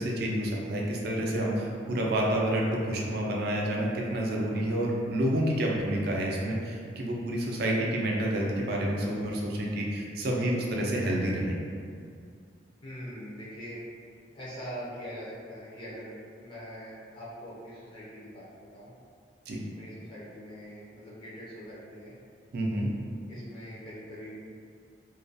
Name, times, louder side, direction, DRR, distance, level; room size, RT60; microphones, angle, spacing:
voice 1, 0.0-11.6 19.5-19.6 22.5-22.9, right 1 dB, 60° right, -2 dB, 0.4 m, -29 dB
voice 2, 12.8-13.8 14.3-18.9 19.7-22.1 23.3-24.3, equal, 25° left, -8 dB, 0.4 m, -43 dB
2.3 x 2.2 x 2.6 m, 2.3 s
head